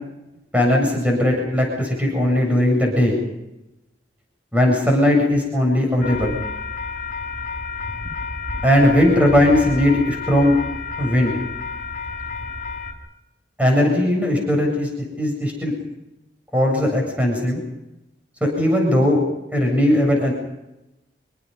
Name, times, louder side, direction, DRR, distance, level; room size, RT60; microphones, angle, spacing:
voice 1, 0.5-3.2 4.5-6.3 8.6-10.6 11.0-11.4 13.6-14.9 15.2-15.7 16.5-17.6 18.4-19.2 19.5-20.3, left 1 dB, 10° right, 0 dB, 7.8 m, -18 dB
sound 1, 6.0-12.9, left 4 dB, 45° left, 5.4 m, -30 dB
27.0 x 24.0 x 5.7 m, 0.92 s
head